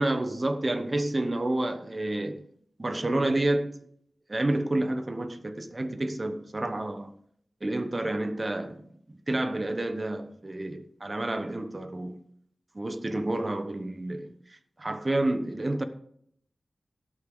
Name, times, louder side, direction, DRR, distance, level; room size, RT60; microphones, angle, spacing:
voice 1, 0.0-2.4 2.8-3.7 4.3-7.1 7.6-8.8 9.3-12.2 12.7-14.3 14.8-15.8, right 1 dB, 30° right, 1.1 m, -29 dB
17.0 x 6.5 x 3.9 m
wide cardioid pair, 80°, 0 cm